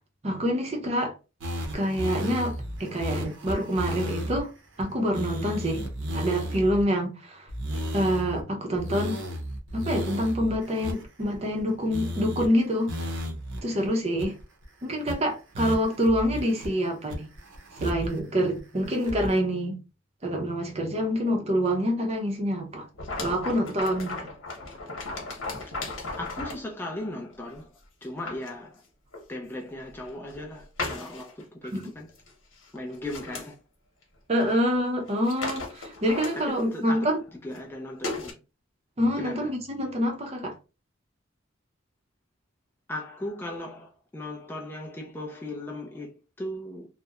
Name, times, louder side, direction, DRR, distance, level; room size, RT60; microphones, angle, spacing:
voice 1, 0.2-1.1 1.7-4.5 4.8-5.9 6.1-7.5 7.9-9.2 9.7-12.9 13.6-14.3 14.8-17.3 17.8-19.8 20.2-22.9 23.2-24.3 31.7-31.8 34.3-37.2 39.0-40.5, equal, 30° right, 0.6 m, -26 dB
sound 1, 1.4-4.4 4.8-4.9 5.1-6.8 7.5-8.4 8.8-11.6 11.9-12.5 12.9-13.6 13.9-14.0 14.2-14.6 15.1-15.2 15.5-16.7 17.1-18.2 18.6-19.4, equal, 75° right, 0.7 m, -34 dB
sound 2, 22.9-26.7 27.5-27.6 28.0-28.5 29.1-29.2 30.0-30.4 30.8-31.4 31.8-31.9 32.2-32.3 32.6-33.5 34.4-34.5 34.8-34.9 35.1-36.7 37.5-37.6 38.0-38.3, left 3 dB, 90° left, 0.9 m, -36 dB
voice 2, 26.2-27.7 28.0-28.8 29.3-32.1 32.7-33.6 36.4-37.1 37.4-38.3 39.2-39.5 42.9-46.9, left 1 dB, 10° left, 0.3 m, -37 dB
2.8 x 2.1 x 2.3 m
head